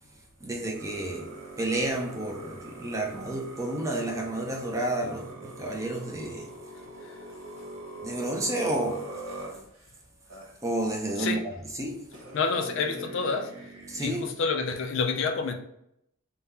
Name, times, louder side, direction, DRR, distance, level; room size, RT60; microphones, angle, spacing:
voice 1, 0.4-6.5 8.0-9.1 10.6-11.4 11.7-12.1 13.9-14.2, right 1 dB, 15° right, 0.5 m, -31 dB
sound 1, 0.8-9.9 10.3-10.5 11.5-11.6 12.1-14.1, right 1 dB, 70° right, 1.1 m, -43 dB
voice 2, 12.3-13.7 14.0-15.5, left 4 dB, 55° left, 0.4 m, -29 dB
3.6 x 2.1 x 4.1 m
head